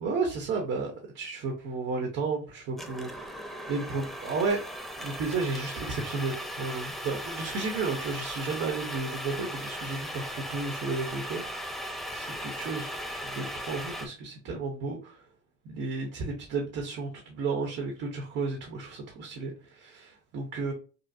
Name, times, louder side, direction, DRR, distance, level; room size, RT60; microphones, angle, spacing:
voice 1, 0.0-4.6 5.0-15.3 15.6-20.7, right 4 dB, 50° right, 1 dB, 1.0 m, -33 dB
sound 1, 2.8-14.1, equal, ahead, 0.4 m, -37 dB
5.5 x 2.0 x 2.7 m, 0.37 s
cardioid pair, 140°, 29 cm